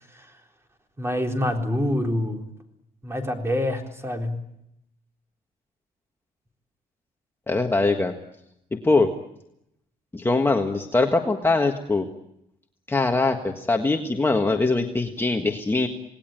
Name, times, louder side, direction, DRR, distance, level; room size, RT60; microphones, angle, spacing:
voice 1, 1.0-2.4 3.0-4.4, left 1 dB, 15° right, 3 dB, 3.9 m, -26 dB
voice 2, 7.5-8.1 8.7-9.1 10.1-12.1 12.9-15.9, left 3 dB, 15° left, 3 dB, 1.6 m, -22 dB
28.0 x 19.0 x 9.1 m, 0.81 s
cardioid pair, 130°, 17 cm